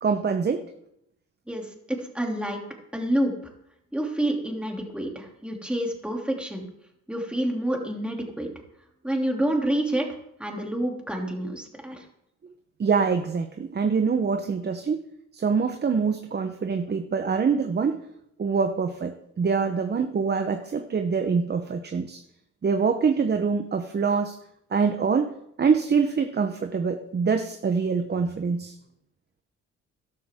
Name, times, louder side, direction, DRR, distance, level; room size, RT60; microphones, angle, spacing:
voice 1, 0.0-0.6 12.8-15.0 15.3-18.0 18.4-22.2 22.6-24.4 24.7-28.7, right 5 dB, 35° right, 7 dB, 1.0 m, -25 dB
voice 2, 1.5-2.6 2.9-3.3 3.9-6.6 7.1-8.5 9.0-10.1 10.4-12.0, right 1 dB, 5° right, 1 dB, 3.0 m, -28 dB
13.5 x 12.0 x 3.7 m, 0.77 s
cardioid pair, 90°, 30 cm